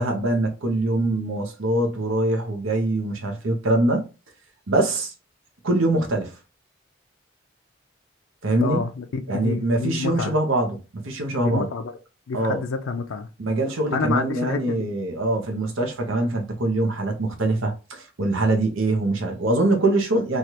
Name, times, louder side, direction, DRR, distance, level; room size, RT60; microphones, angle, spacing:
voice 1, 0.0-4.1 4.7-5.1 5.6-6.3 8.4-8.8 9.3-11.7 12.3-12.6 13.4-20.4, right 2 dB, 85° right, 0.8 m, -23 dB
voice 2, 8.6-10.4 11.4-11.9 12.3-13.3 13.9-14.9, left 4 dB, 90° left, 0.4 m, -28 dB
3.2 x 2.4 x 2.8 m
head